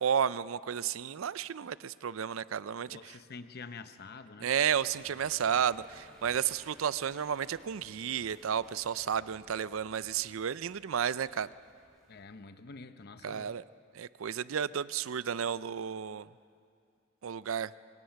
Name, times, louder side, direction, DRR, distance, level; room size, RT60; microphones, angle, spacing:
voice 1, 0.0-3.1 4.4-11.5 13.2-13.6 13.9-16.3 17.2-17.7, right 8 dB, 90° right, 17 dB, 0.5 m, -32 dB
voice 2, 2.8-4.5 12.1-13.6, left 4 dB, 55° left, 11 dB, 0.8 m, -47 dB
sound 1, 4.6-12.2, equal, ahead, 3.4 m, -58 dB
24.0 x 19.5 x 5.8 m, 2.3 s
head